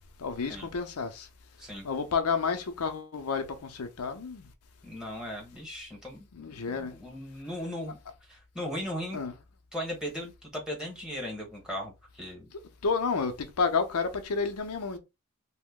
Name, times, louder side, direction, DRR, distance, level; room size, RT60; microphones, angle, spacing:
voice 1, 0.2-1.3 1.8-4.5 6.3-6.9 9.1-9.3 12.8-15.0, left 5 dB, 90° left, 0.6 m, -30 dB
voice 2, 4.8-6.2 6.7-8.0 8.3-9.2 9.7-12.5, equal, 5° right, 1.2 m, -37 dB
3.0 x 2.1 x 3.6 m
head